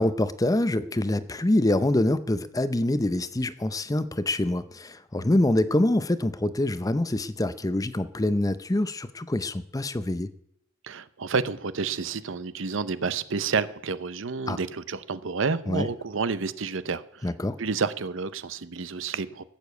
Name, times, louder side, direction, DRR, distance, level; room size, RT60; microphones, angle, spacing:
voice 1, 0.0-10.3 14.5-14.6 15.7-15.9 17.2-17.6, left 1 dB, 15° left, 13 dB, 0.6 m, -25 dB
voice 2, 10.8-17.3 17.6-19.4, right 5 dB, 65° right, 15 dB, 0.7 m, -30 dB
15.5 x 7.0 x 8.1 m, 0.73 s
head